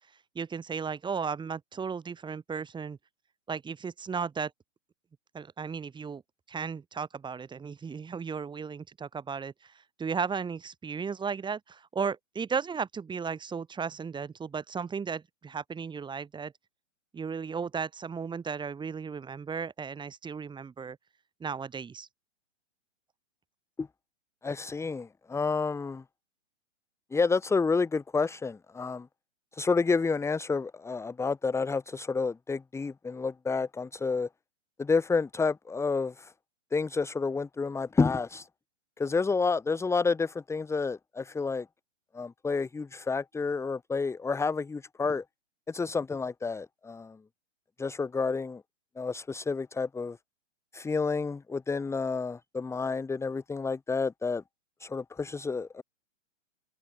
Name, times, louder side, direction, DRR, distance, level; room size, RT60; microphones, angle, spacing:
voice 1, 0.3-3.0 3.5-4.5 5.3-6.2 6.5-9.7 10.0-16.5 17.1-21.0 21.4-22.1, right 6 dB, 10° right, 6.7 m, -35 dB
voice 2, 24.4-26.0 27.1-29.1 29.5-34.3 34.8-36.3 36.7-38.5 39.0-41.7 42.1-45.2 45.7-47.2 47.8-48.6 49.0-50.2 50.7-54.4 54.8-55.8, left 4 dB, 5° left, 2.1 m, -29 dB
figure-of-eight pair, 115°, 37 cm